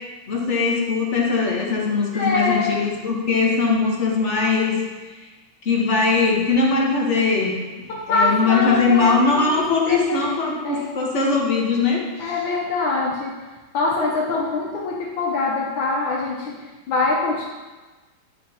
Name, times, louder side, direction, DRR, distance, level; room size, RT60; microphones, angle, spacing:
voice 1, 0.3-4.8 5.2-5.3 5.6-12.3, left 4 dB, 40° left, -2 dB, 1.3 m, -21 dB
voice 2, 2.1-2.8 7.9-10.3 10.6-10.9 12.2-13.4 13.7-17.5, left 3 dB, 80° left, -4 dB, 1.6 m, -24 dB
11.0 x 4.3 x 2.8 m, 1.3 s
omnidirectional pair, 2.2 m